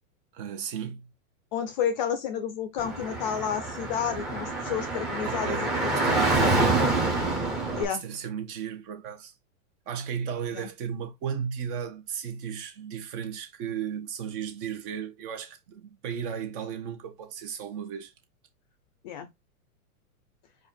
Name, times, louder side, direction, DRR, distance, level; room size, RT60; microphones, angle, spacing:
voice 1, 0.3-1.1 5.2-6.9 7.9-9.3 9.9-18.1, right 8 dB, 40° right, 1.1 m, -35 dB
voice 2, 1.5-5.9 7.8-8.0 10.5-10.7 19.0-19.3, left 8 dB, 35° left, 0.5 m, -31 dB
Car / Traffic noise roadway noise, 2.8-7.8, right 2 dB, ahead, 0.7 m, -26 dB
4.7 x 2.6 x 4.3 m
supercardioid pair, 160°, 43 cm